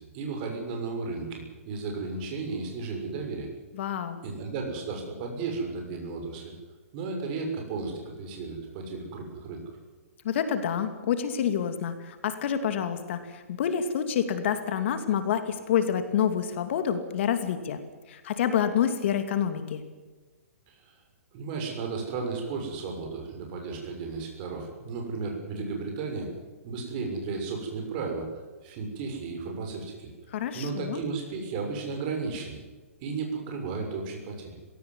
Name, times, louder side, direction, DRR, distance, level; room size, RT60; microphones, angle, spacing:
voice 1, 0.0-3.5 4.2-6.5 6.9-9.6 20.7-20.9 21.3-26.3 26.6-28.3 28.6-30.1 30.5-32.6 33.0-34.5, right 4 dB, 40° right, 2 dB, 6.6 m, -34 dB
voice 2, 3.7-4.2 10.2-17.8 18.1-19.8 30.3-31.0, left 8 dB, 55° left, 9 dB, 2.6 m, -28 dB
18.5 x 18.0 x 9.7 m, 1.3 s
hypercardioid pair, 135°, 8 cm